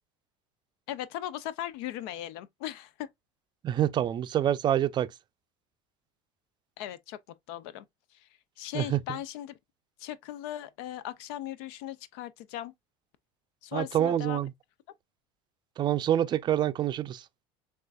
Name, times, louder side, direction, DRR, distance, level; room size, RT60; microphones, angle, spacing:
voice 1, 0.9-3.1 6.8-7.2 7.5-7.8 8.1-8.3 8.6-9.6 10.0-12.7 13.6-14.4, left 12 dB, 75° left, 0.4 m, -38 dB
voice 2, 3.6-5.1 8.7-9.0 13.7-14.5 15.8-17.2, right 11 dB, 35° right, 0.4 m, -26 dB
6.4 x 2.4 x 2.3 m
supercardioid pair, 110°, 13 cm